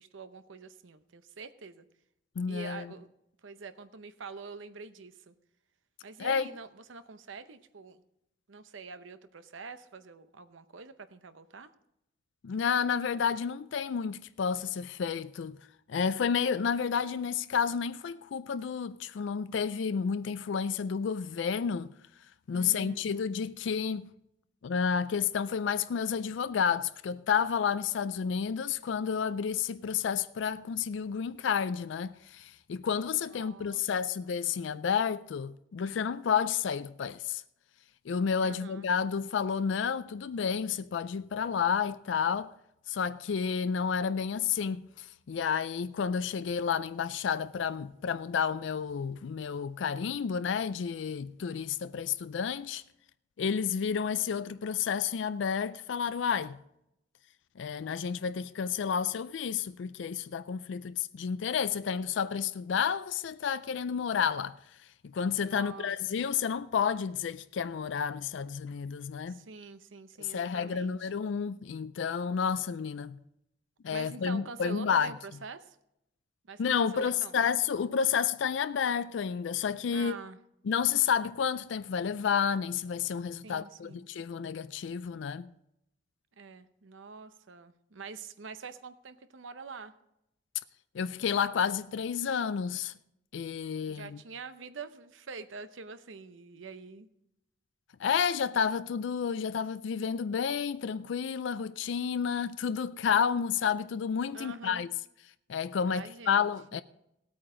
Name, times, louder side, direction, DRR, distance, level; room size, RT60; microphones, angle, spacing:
voice 1, 0.0-1.9 2.5-3.1 3.4-5.3 6.0-8.0 8.5-11.7 22.5-23.2 33.3-33.8 38.4-38.9 65.4-66.3 69.3-71.1 73.8-75.8 76.4-77.4 79.9-80.4 83.4-84.1 86.4-89.9 93.8-97.1 104.3-104.9 105.9-106.8, right 4 dB, 85° right, 0.8 m, -46 dB
voice 2, 2.4-2.9 6.2-6.5 12.4-15.6 15.9-21.9 22.5-24.1 24.6-37.4 38.1-42.5 42.9-52.8 53.4-56.6 57.6-64.6 65.0-69.4 70.2-73.2 73.8-75.1 76.6-80.2 80.7-85.5 90.9-92.9 93.3-94.2 98.0-104.9 105.5-106.8, left 7 dB, 75° left, 0.4 m, -30 dB
18.0 x 8.7 x 3.8 m
head